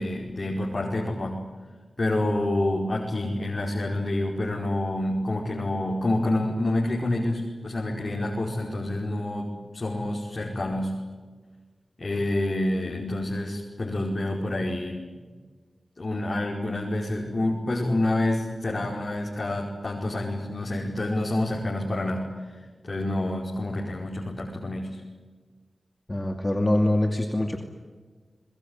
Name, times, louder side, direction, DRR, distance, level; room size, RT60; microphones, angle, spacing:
voice 1, 0.0-1.4 2.0-11.0 12.0-15.2 16.0-22.5 22.8-25.0, left 1 dB, 50° left, -2 dB, 5.0 m, -28 dB
voice 2, 26.1-27.6, left 1 dB, 25° left, 4 dB, 2.6 m, -24 dB
24.0 x 21.5 x 9.8 m, 1.4 s
cardioid pair, 50°, 0 cm